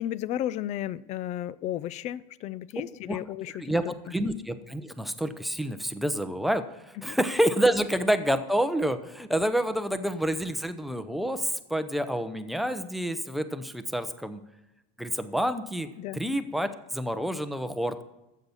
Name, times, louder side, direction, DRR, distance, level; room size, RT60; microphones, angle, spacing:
voice 1, 0.0-3.9 7.0-7.2 16.0-16.2, left 12 dB, 35° left, 20 dB, 0.4 m, -34 dB
voice 2, 3.6-14.4 15.0-15.9 16.1-18.0, right 1 dB, ahead, 9 dB, 0.7 m, -28 dB
13.0 x 8.3 x 7.1 m, 0.94 s
supercardioid pair, 155°, 20 cm